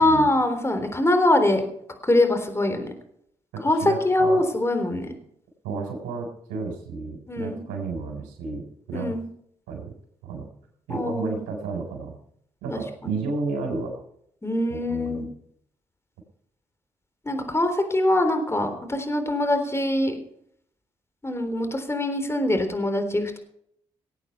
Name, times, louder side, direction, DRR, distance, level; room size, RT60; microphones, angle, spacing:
voice 1, 0.0-1.6 2.0-2.9 3.6-5.1 7.3-7.6 8.9-9.3 10.9-11.4 12.7-12.8 14.4-15.3 17.3-20.2 21.2-23.4, left 1 dB, 20° left, 7 dB, 3.7 m, -23 dB
voice 2, 3.5-4.4 5.6-9.1 9.7-9.9 10.2-10.4 10.9-12.2 12.6-14.0 14.7-15.3, right 4 dB, 85° right, 3 dB, 4.1 m, -32 dB
18.5 x 8.9 x 5.7 m, 0.70 s
supercardioid pair, 50°, 13 cm